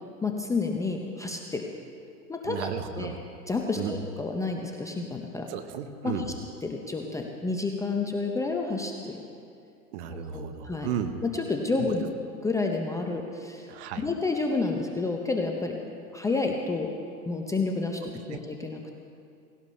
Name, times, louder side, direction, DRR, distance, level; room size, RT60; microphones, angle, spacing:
voice 1, 0.2-1.6 2.3-3.1 3.5-5.5 6.0-6.1 6.6-9.2 10.1-10.9 11.2-12.1 12.4-13.7 14.0-15.8 16.1-16.9 17.3-18.0 18.3-18.8, left 3 dB, 5° left, 2 dB, 0.6 m, -30 dB
voice 2, 2.4-3.1 3.7-4.0 5.5-6.3 9.9-11.1 11.8-11.9 13.7-14.1 18.3-18.4, right 9 dB, 45° right, 9 dB, 1.1 m, -34 dB
18.0 x 17.0 x 3.3 m, 2.5 s
hypercardioid pair, 120°, 45 cm